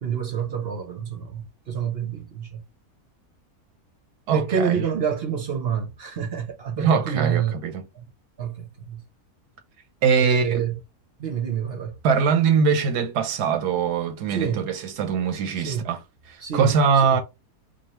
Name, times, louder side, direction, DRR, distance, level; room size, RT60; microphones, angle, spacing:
voice 1, 0.0-2.6 4.3-7.6 7.9-8.0 8.4-9.0 10.2-10.8 11.2-12.0 14.3-14.7 15.6-15.9 16.4-16.8 17.1-17.2, right 7 dB, 50° right, 0.9 m, -28 dB
voice 2, 4.3-4.8 6.8-7.8 10.0-10.6 12.0-16.0 16.3-17.2, right 6 dB, 85° right, 1.4 m, -22 dB
5.2 x 2.4 x 3.1 m
omnidirectional pair, 1.6 m